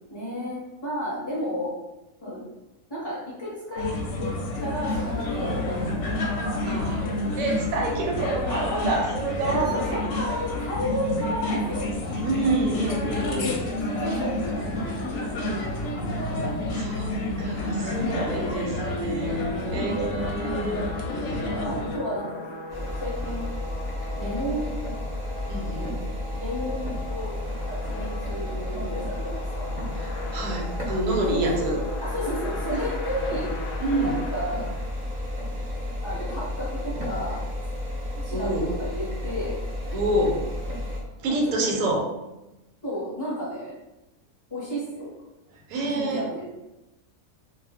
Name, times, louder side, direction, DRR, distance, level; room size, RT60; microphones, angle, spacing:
voice 1, 0.1-1.7 2.2-2.4 2.9-3.9 4.2-4.3 4.6-7.1 8.7-8.8 9.4-12.3 13.2-15.3 15.7-16.3 19.4-19.9 21.0-21.3 21.6-22.3 22.8-23.5 24.1-24.7 25.7-25.9 26.3-27.3 27.6-30.0 31.3-31.6 32.0-33.5 34.0-34.7 36.0-37.4 38.1-39.6 41.3-41.9 42.8-43.7 44.5-45.1 45.9-46.5, equal, 25° left, -10 dB, 0.6 m, -33 dB
sound 1, 3.8-22.0, left 1 dB, 70° left, 0.8 m, -29 dB
voice 2, 6.6-7.0 7.4-9.8 12.2-13.5 16.7-20.9 21.2-21.4 24.2-24.4 25.5-25.9 30.0-31.8 32.7-32.8 33.8-34.2 38.3-38.7 39.9-40.4 41.2-42.1 45.7-46.2, right 2 dB, 85° right, 1 dB, 1.0 m, -28 dB
sound 2, 19.1-35.5, left 3 dB, 85° left, 0.4 m, -40 dB
sound 3, 22.7-41.0, left 1 dB, 45° right, 0.5 m, -32 dB
2.4 x 2.0 x 3.4 m, 0.97 s
omnidirectional pair, 1.4 m